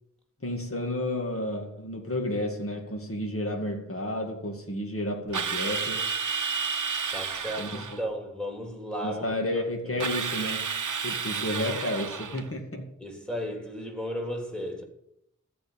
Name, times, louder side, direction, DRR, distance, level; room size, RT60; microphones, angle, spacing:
voice 1, 0.4-6.1 7.6-7.8 9.0-12.9, left 1 dB, 45° left, 2.2 m, -31 dB
Drill, 5.3-8.0 10.0-12.5, right 5 dB, 80° right, 0.8 m, -31 dB
voice 2, 7.1-10.1 13.0-14.8, equal, 5° left, 3.1 m, -35 dB
14.5 x 5.2 x 8.7 m
wide cardioid pair, 50°, 30 cm